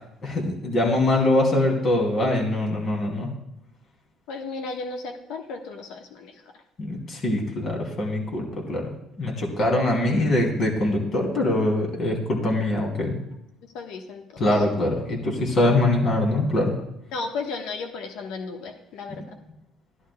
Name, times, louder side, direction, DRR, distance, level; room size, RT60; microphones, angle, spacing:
voice 1, 0.2-3.3 6.8-8.9 9.2-13.1 14.4-16.7, left 1 dB, 50° left, 0 dB, 2.9 m, -23 dB
voice 2, 4.3-6.3 13.7-14.3 17.1-19.2, left 4 dB, 75° left, 3 dB, 1.3 m, -34 dB
14.5 x 11.0 x 2.3 m, 0.82 s
supercardioid pair, 75°, 0 cm